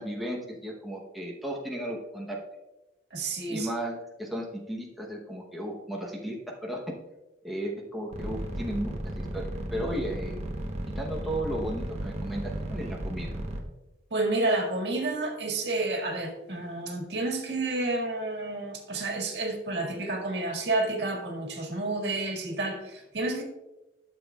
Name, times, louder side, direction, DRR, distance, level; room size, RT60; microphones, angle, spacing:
voice 1, 0.0-2.4 3.5-7.0 7.4-10.5 10.9-13.3, equal, ahead, -2 dB, 0.9 m, -35 dB
voice 2, 3.1-3.7 14.1-23.4, right 2 dB, 65° right, 0 dB, 1.9 m, -30 dB
sound 1, 8.1-13.6, right 1 dB, 35° right, 1.0 m, -34 dB
12.5 x 7.2 x 2.3 m, 1.0 s
head